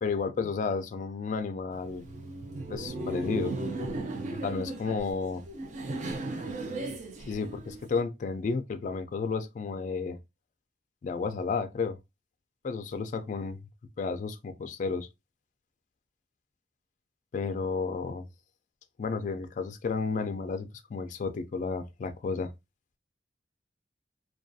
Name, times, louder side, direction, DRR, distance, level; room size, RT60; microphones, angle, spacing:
voice 1, 0.0-2.0 2.7-3.5 4.4-5.4 7.3-10.2 11.0-12.0 12.6-13.6 14.0-15.1 17.3-18.3 19.0-22.5, left 4 dB, 45° left, 0.3 m, -32 dB
Laughter, 1.7-8.0, right 2 dB, 45° right, 0.4 m, -36 dB
2.3 x 2.3 x 2.5 m
head